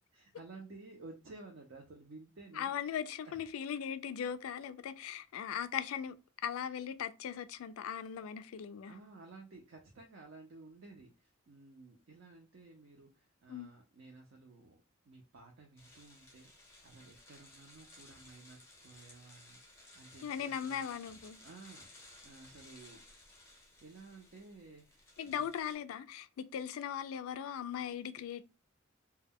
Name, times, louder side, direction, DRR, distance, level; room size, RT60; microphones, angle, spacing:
voice 1, 0.1-2.7 3.2-3.4 8.8-20.8 21.4-23.0 23.8-25.5, right 3 dB, 55° right, 0.5 m, -54 dB
voice 2, 2.6-6.2 6.4-8.9 13.5-13.7 20.2-21.4 25.2-28.4, left 8 dB, 85° left, 0.3 m, -39 dB
sound 1, 15.8-25.7, left 2 dB, 10° left, 0.6 m, -58 dB
2.2 x 2.0 x 3.4 m
head